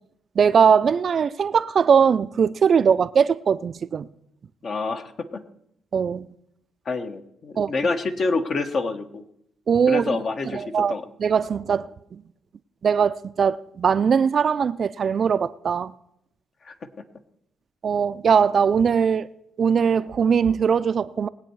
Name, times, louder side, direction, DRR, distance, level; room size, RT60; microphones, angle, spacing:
voice 1, 0.4-4.0 5.9-6.3 7.6-7.7 9.7-10.2 10.5-10.9 11.2-12.2 12.8-15.9 17.8-19.3 19.6-21.3, right 6 dB, 50° right, 0.4 m, -20 dB
voice 2, 4.6-5.4 6.8-9.2 9.9-11.1 16.6-16.7, left 3 dB, 50° left, 1.2 m, -27 dB
20.0 x 8.4 x 4.7 m
cardioid pair, 90°, 0 cm